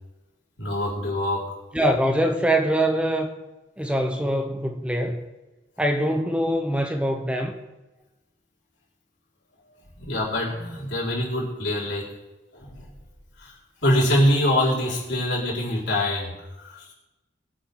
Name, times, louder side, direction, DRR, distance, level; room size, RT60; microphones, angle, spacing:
voice 1, 0.6-1.6 10.0-12.1 12.5-12.9 13.4-13.5 13.8-16.9, left 1 dB, 80° left, -6 dB, 4.7 m, -24 dB
voice 2, 1.7-3.4 3.8-5.2 5.8-7.5, right 1 dB, 5° right, 4 dB, 0.8 m, -23 dB
22.5 x 8.8 x 3.8 m, 1.1 s
head